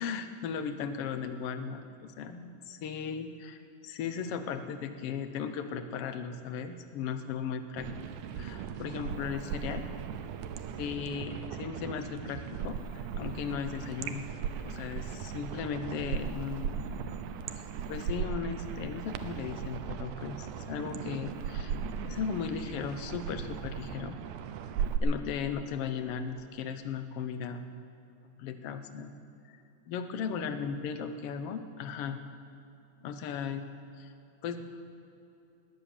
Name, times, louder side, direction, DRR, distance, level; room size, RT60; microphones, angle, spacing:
voice 1, 0.0-7.9 8.3-9.8 10.8-14.2 14.6-16.8 17.9-21.8 22.0-24.2 25.0-27.6 28.4-29.1 29.9-32.2 33.0-33.7 34.0-34.1 34.4-34.6, left 6 dB, 65° left, 9 dB, 1.7 m, -36 dB
sound 1, 7.8-25.0, right 7 dB, 90° right, 2.2 m, -37 dB
19.0 x 9.9 x 7.1 m, 2.8 s
omnidirectional pair, 3.4 m